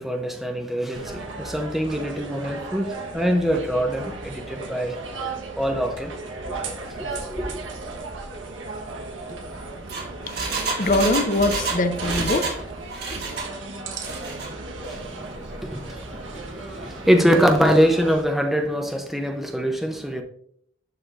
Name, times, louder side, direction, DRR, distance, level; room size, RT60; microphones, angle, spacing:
voice 1, 0.0-5.0 5.6-6.1 7.0-7.6 14.9-20.2, equal, ahead, 0.6 m, -24 dB
sound 1, 0.9-18.2, right 3 dB, 80° right, 1.3 m, -35 dB
Engine, 9.6-12.6 12.9-13.5 13.9-14.5 14.8-14.9, right 4 dB, 55° right, 1.7 m, -29 dB
voice 2, 10.4-12.6 13.1-13.2, left 2 dB, 40° left, 0.7 m, -23 dB
11.5 x 4.3 x 2.5 m
head